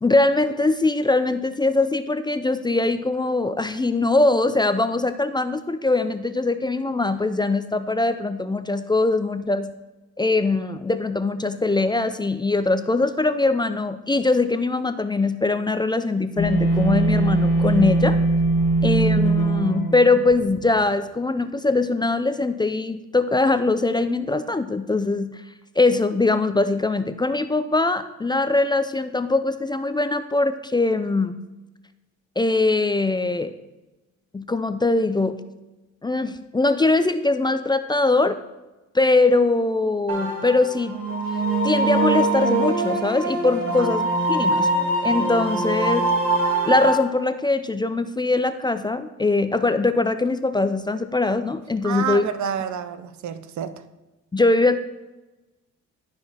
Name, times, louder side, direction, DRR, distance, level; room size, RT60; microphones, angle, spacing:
voice 1, 0.0-9.7 10.2-18.2 18.8-25.4 25.8-31.3 32.4-33.5 34.3-35.4 36.0-38.4 38.9-41.0 41.6-44.7 45.0-46.0 46.6-52.3 54.3-54.8, left 3 dB, 15° left, 10 dB, 0.4 m, -22 dB
sound 1, 16.4-20.6, right 2 dB, 45° left, 1.4 m, -20 dB
sound 2, 40.1-46.9, right 2 dB, 50° right, 2.2 m, -23 dB
voice 2, 51.8-53.7, right 8 dB, 70° right, 12 dB, 0.7 m, -29 dB
12.0 x 4.9 x 4.2 m, 1.1 s
cardioid pair, 90°, 30 cm